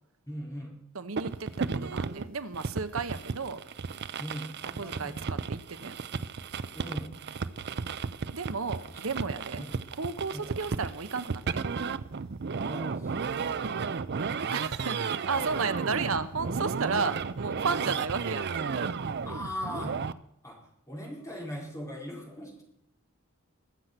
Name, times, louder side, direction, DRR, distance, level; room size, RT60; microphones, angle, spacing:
voice 1, 0.3-0.8 4.2-5.2 6.7-7.2 8.9-9.0 9.5-9.7 10.3-10.8 12.6-13.8 17.9-18.0 19.3-20.0 20.4-20.6 20.9-22.6, equal, 15° left, -2 dB, 4.5 m, -40 dB
voice 2, 0.9-3.6 4.8-6.0 8.3-9.6 9.9-11.6 14.2-18.9, right 4 dB, 70° right, 11 dB, 1.0 m, -33 dB
sound 1, 1.2-20.1, right 5 dB, 50° right, 0.5 m, -34 dB
21.5 x 8.0 x 5.9 m, 0.78 s
head